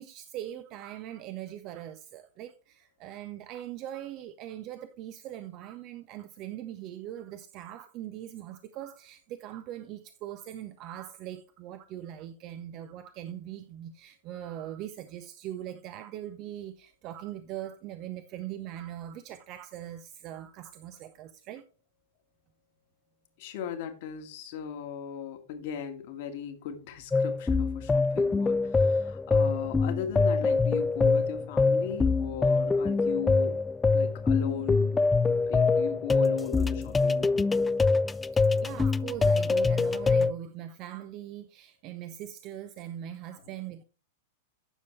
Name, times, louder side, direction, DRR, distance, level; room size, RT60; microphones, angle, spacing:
voice 1, 0.0-21.6 38.3-43.8, right 12 dB, 40° right, 0.7 m, -41 dB
voice 2, 23.4-33.6 33.9-35.1 35.4-37.6, left 8 dB, 50° left, 1.8 m, -38 dB
sound 1, 27.1-40.3, left 4 dB, 15° left, 0.3 m, -25 dB
9.8 x 6.8 x 3.2 m
figure-of-eight pair, 95°, 0 cm